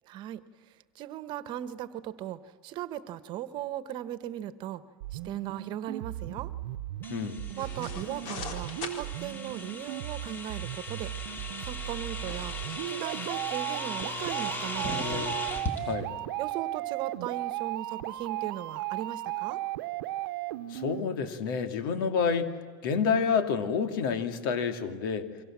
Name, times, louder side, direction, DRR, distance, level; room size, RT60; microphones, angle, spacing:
voice 1, 0.1-0.4 0.9-4.8 5.1-6.5 7.6-11.1 11.6-12.6 12.9-15.2 16.4-19.6, right 12 dB, 45° right, 13 dB, 1.3 m, -38 dB
sound 1, 5.0-21.0, right 15 dB, 85° right, 1.0 m, -36 dB
sound 2, 7.0-15.8, left 1 dB, 20° left, 3.1 m, -38 dB
voice 2, 7.1-7.4 15.8-16.1 20.7-22.5 22.8-25.3, left 6 dB, 80° left, 8 dB, 2.7 m, -28 dB
sound 3, 7.6-15.9, left 5 dB, 55° left, 4.2 m, -47 dB
29.0 x 24.0 x 7.5 m, 1.5 s
supercardioid pair, 145°, 11 cm